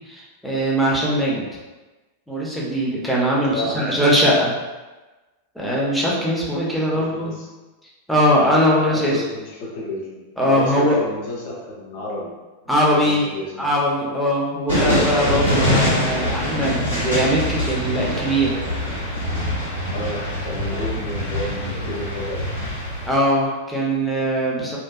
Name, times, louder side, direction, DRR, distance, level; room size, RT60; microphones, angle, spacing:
voice 1, 0.1-1.4 2.3-4.5 5.6-7.3 8.1-9.2 10.4-11.0 12.7-13.3 13.6-18.6 20.7-20.8 23.1-24.8, equal, ahead, -5 dB, 0.6 m, -20 dB
voice 2, 3.4-4.3 6.9-7.5 8.9-12.3 12.6-13.7 19.9-22.5, left 1 dB, 45° left, -3 dB, 0.7 m, -31 dB
sound 1, 14.7-23.1, left 1 dB, 80° left, 1.0 m, -24 dB
2.6 x 2.2 x 2.4 m, 1.2 s
figure-of-eight pair, 90°, 0 cm